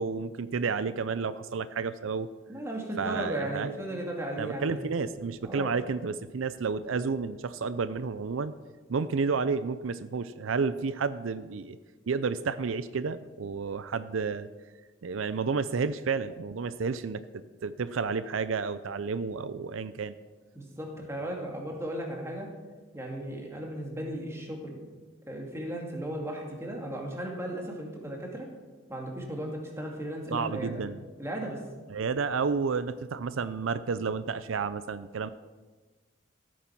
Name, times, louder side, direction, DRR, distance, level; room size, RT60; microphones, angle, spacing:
voice 1, 0.0-2.3 3.0-3.7 4.4-8.5 8.9-11.8 12.1-14.5 15.0-20.1 30.3-31.0 31.9-35.3, right 5 dB, 85° right, 14 dB, 0.5 m, -31 dB
voice 2, 2.5-4.8 5.0-5.2 5.4-5.7 20.5-22.5 22.9-24.8 25.3-28.5 28.9-30.8 31.2-31.6, right 1 dB, 15° right, 0 dB, 2.4 m, -36 dB
15.0 x 9.2 x 5.9 m, 1.3 s
head